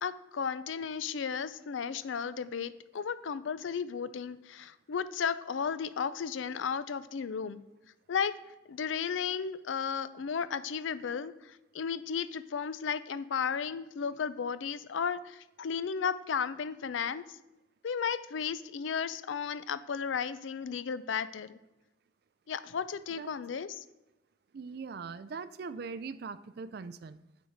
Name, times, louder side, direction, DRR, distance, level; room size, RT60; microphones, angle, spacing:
voice 1, 0.0-7.6 8.1-8.4 8.7-17.4 17.8-21.6 22.5-23.8, left 6 dB, 90° left, 14 dB, 0.4 m, -34 dB
voice 2, 24.5-27.2, right 5 dB, 55° right, 14 dB, 0.4 m, -41 dB
8.7 x 4.6 x 5.0 m, 0.96 s
head